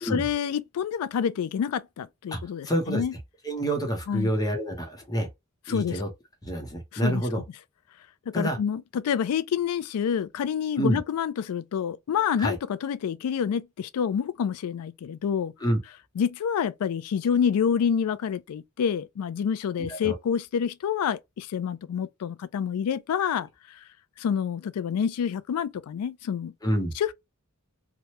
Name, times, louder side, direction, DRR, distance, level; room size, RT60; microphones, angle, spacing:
voice 1, 0.0-3.1 4.1-4.3 5.7-6.0 7.0-7.2 8.3-15.5 16.2-23.8 24.2-26.5 27.0-27.1, left 7 dB, 80° left, 0.3 m, -28 dB
voice 2, 2.3-3.0 3.4-5.3 5.7-6.1 6.4-7.4 8.3-8.6 10.8-11.0 12.4-12.6 15.6-15.8 19.9-20.1 23.2-23.3 26.6-26.9, right 1 dB, 15° left, 0.8 m, -27 dB
2.9 x 2.2 x 2.8 m
head